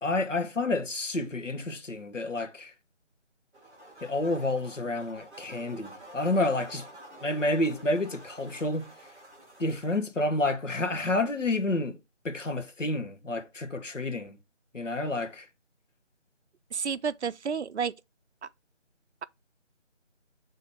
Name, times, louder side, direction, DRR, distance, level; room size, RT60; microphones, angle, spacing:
voice 1, 0.0-2.7 4.0-6.8 7.2-8.8 9.6-12.0 12.2-14.4 14.7-15.5, left 2 dB, 90° left, 1.3 m, -29 dB
sound 1, 3.5-10.0, right 1 dB, 10° right, 2.3 m, -49 dB
voice 2, 16.7-17.9 18.4-18.5, right 6 dB, 65° right, 0.5 m, -31 dB
7.0 x 3.9 x 3.5 m
figure-of-eight pair, 165°, 36 cm